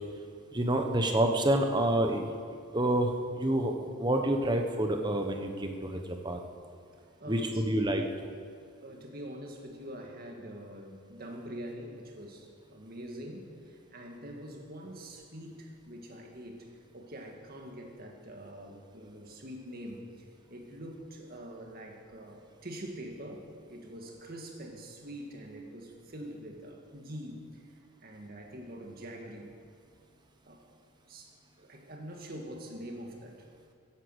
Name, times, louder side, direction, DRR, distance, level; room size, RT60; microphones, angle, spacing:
voice 1, 0.5-2.3 2.7-3.1 3.4-6.0 6.2-6.4 7.3-8.1, right 1 dB, 20° right, 4 dB, 1.1 m, -28 dB
voice 2, 7.0-7.7 8.8-16.7 16.9-20.3 20.5-27.6 28.0-29.5 30.5-30.7 31.1-31.3 31.6-33.5, equal, 45° right, 1 dB, 2.1 m, -44 dB
15.5 x 10.0 x 8.1 m, 2.4 s
head